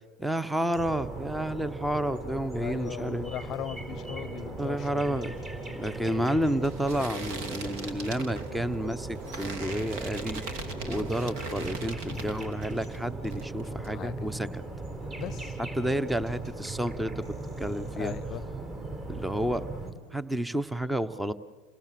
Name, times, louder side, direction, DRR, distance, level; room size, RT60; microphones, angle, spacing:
voice 1, 0.2-3.3 4.6-5.3 5.8-10.4 10.8-14.6 15.7-18.1 19.1-19.7 20.1-21.3, right 1 dB, 5° right, 0.9 m, -30 dB
sound 1, 0.7-19.9, right 2 dB, 30° right, 4.6 m, -38 dB
voice 2, 2.5-5.4 12.1-12.5 13.7-14.3 15.2-15.9 17.9-18.4, left 11 dB, 45° left, 0.7 m, -39 dB
sound 2, 5.2-13.0 13.2-13.9, right 3 dB, 65° right, 2.6 m, -41 dB
29.5 x 18.0 x 7.6 m
hypercardioid pair, 105°, 0 cm